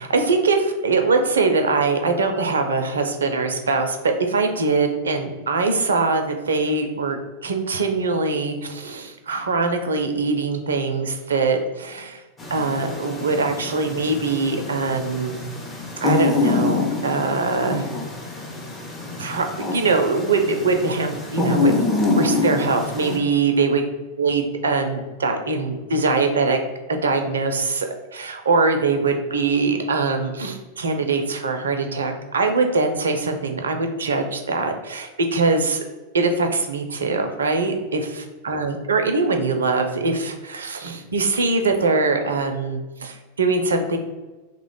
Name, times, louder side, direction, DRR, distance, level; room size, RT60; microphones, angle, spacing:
voice 1, 0.0-12.2 12.5-15.4 16.0-17.9 19.2-21.8 22.1-23.8 24.2-26.6 26.9-27.9 28.1-35.8 36.1-44.0, right 3 dB, 70° right, 6 dB, 0.4 m, -22 dB
sound 1, 12.4-23.2, left 3 dB, 15° left, 0.7 m, -25 dB
3.0 x 2.2 x 3.9 m, 1.2 s
figure-of-eight pair, 90°, 0 cm